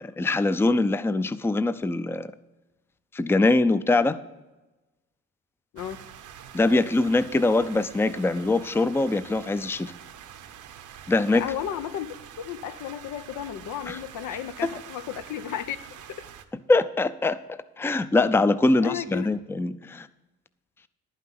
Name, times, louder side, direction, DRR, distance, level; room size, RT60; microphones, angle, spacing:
voice 1, 0.0-2.3 3.1-4.2 6.5-9.9 11.1-11.4 13.9-14.0 16.7-17.4 17.8-20.1, left 2 dB, 10° left, 0.4 m, -23 dB
sound 1, 5.8-16.4, right 9 dB, 80° right, 1.0 m, -46 dB
voice 2, 11.3-12.1 12.4-15.8 16.1-16.3 18.8-19.3, left 10 dB, 80° left, 0.8 m, -33 dB
11.0 x 5.7 x 7.5 m
cardioid pair, 90°, 30 cm